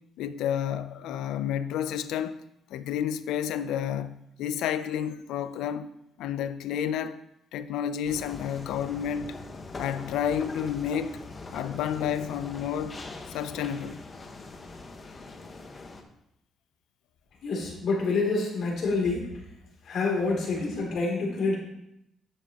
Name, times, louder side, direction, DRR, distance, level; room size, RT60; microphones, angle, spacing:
voice 1, 0.2-2.4 2.7-5.9 6.2-7.2 7.5-9.4 9.8-11.2 11.5-13.0 13.3-14.0, left 9 dB, 90° left, 0.4 m, -30 dB
sound 1, 8.1-16.0, left 3 dB, 35° left, 1.2 m, -42 dB
voice 2, 17.4-19.3 19.8-21.6, left 3 dB, 70° left, 2.9 m, -27 dB
9.9 x 7.3 x 2.9 m
cardioid pair, 90°, 0 cm